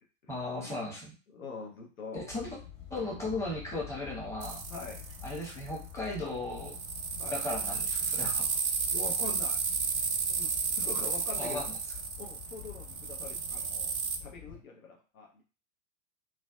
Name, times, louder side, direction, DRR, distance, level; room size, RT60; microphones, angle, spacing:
voice 1, 0.3-1.1 2.3-2.6 2.9-4.6 5.2-6.8 7.3-8.5 11.4-11.6, left 2 dB, 5° left, -4 dB, 0.8 m, -36 dB
voice 2, 1.3-2.2 4.7-5.0 7.2-7.4 8.9-9.6 10.3-11.6 12.2-13.9 14.2-15.4, left 5 dB, 80° left, 0 dB, 0.7 m, -43 dB
sound 1, 2.3-14.6, left 9 dB, 60° left, 1.1 m, -48 dB
sound 2, 4.4-5.6 6.6-14.2, right 5 dB, 80° right, 0.5 m, -32 dB
2.4 x 2.2 x 2.3 m, 0.36 s
figure-of-eight pair, 90°, 41 cm